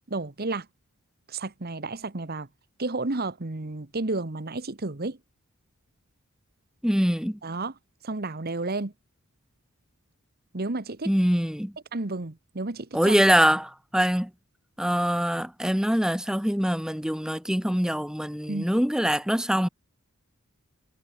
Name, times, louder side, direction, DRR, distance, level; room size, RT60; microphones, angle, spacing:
voice 1, 0.1-0.7 1.3-2.5 2.8-5.2 7.4-7.7 8.0-8.9 10.5-11.1 11.9-13.1 18.5-18.7, right 3 dB, 45° right, 1.3 m, -31 dB
voice 2, 6.8-7.4 11.0-11.7 12.9-14.3 14.8-19.7, equal, 5° right, 1.2 m, -24 dB
head